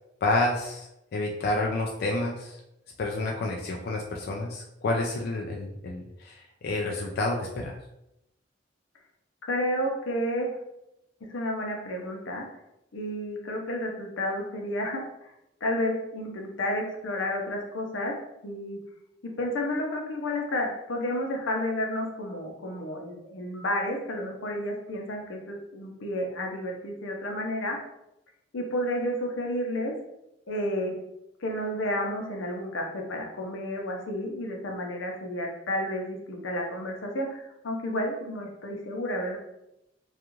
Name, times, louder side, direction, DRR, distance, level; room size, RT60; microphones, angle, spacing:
voice 1, 0.2-0.9 1.1-2.6 3.0-7.8, left 2 dB, 50° left, 0 dB, 0.3 m, -29 dB
voice 2, 9.5-10.5 11.3-12.5 12.9-15.0 15.6-18.1 18.4-18.8 19.2-27.8 28.5-29.9 30.5-31.0 31.4-39.4, left 1 dB, 85° left, 1 dB, 0.6 m, -31 dB
2.4 x 2.3 x 3.0 m, 0.86 s
head